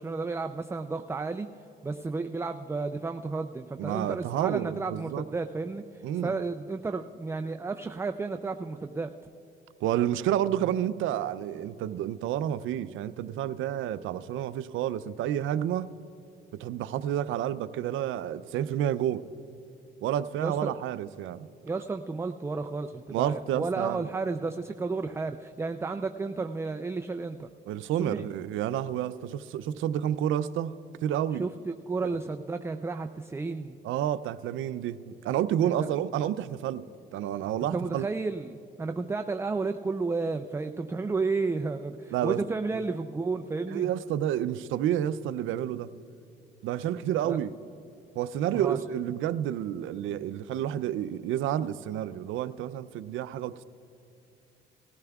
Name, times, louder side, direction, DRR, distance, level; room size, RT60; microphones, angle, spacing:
voice 1, 0.0-1.5 1.8-9.1 20.4-20.7 21.6-27.5 28.0-28.3 31.4-33.8 37.7-43.9 47.3-47.4 48.5-48.8, right 3 dB, 15° right, 7 dB, 0.4 m, -32 dB
voice 2, 3.8-5.2 6.0-6.3 9.8-15.9 16.5-19.2 20.0-21.5 23.1-24.1 27.7-30.7 31.0-31.4 32.0-32.1 33.8-36.8 37.1-38.1 42.1-42.4 43.7-45.9 46.6-47.5 48.2-53.6, right 11 dB, 85° right, 14 dB, 0.5 m, -30 dB
19.5 x 14.5 x 2.3 m, 2.8 s
cardioid pair, 90°, 20 cm